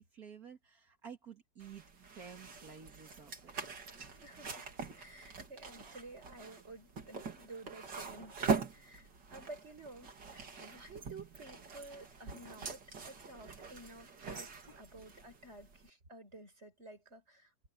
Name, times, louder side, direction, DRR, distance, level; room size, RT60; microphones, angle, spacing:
voice 1, 0.0-1.8 2.1-3.5 5.7-6.0, right 7 dB, 60° right, 2.6 m, -52 dB
sound 1, 1.6-15.9, right 5 dB, 85° right, 3.2 m, -43 dB
voice 2, 4.1-4.7 5.0-14.5 14.8-17.7, right 2 dB, 40° right, 5.6 m, -52 dB
omnidirectional pair, 1.8 m